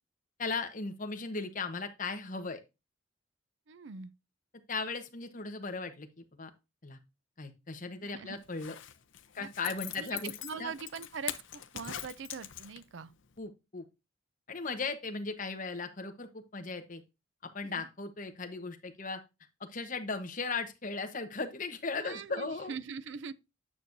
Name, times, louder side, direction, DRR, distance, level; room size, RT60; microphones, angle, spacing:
voice 1, 0.4-2.6 4.7-6.5 6.8-7.0 7.4-8.7 9.3-10.7 13.4-13.8 14.5-17.0 17.4-19.2 19.6-22.7, left 4 dB, 40° left, 1.1 m, -37 dB
voice 2, 3.7-4.1 8.0-8.4 9.4-9.5 9.9-13.1 17.6-17.9 22.0-23.3, right 6 dB, 65° right, 0.5 m, -42 dB
Zipper (clothing), 8.4-13.0 13.4-13.5, left 11 dB, 75° left, 0.7 m, -42 dB
9.3 x 6.2 x 2.6 m
head